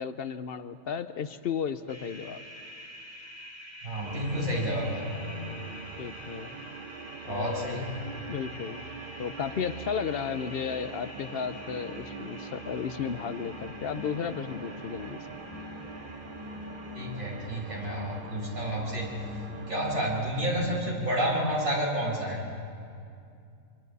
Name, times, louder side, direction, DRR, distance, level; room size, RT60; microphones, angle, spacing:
voice 1, 0.0-2.4 6.0-6.5 7.2-7.9 8.3-8.8 9.2-15.3, left 7 dB, 55° left, 12 dB, 0.7 m, -34 dB
sound 1, 1.9-20.5, left 1 dB, 25° right, 3.3 m, -45 dB
voice 2, 3.8-5.4 7.3-7.9 16.9-19.1 19.7-22.4, equal, 70° right, -4 dB, 5.9 m, -30 dB
sound 2, 4.0-19.8, right 5 dB, 40° right, 1.0 m, -44 dB
27.0 x 25.0 x 4.1 m, 2.5 s
omnidirectional pair, 1.5 m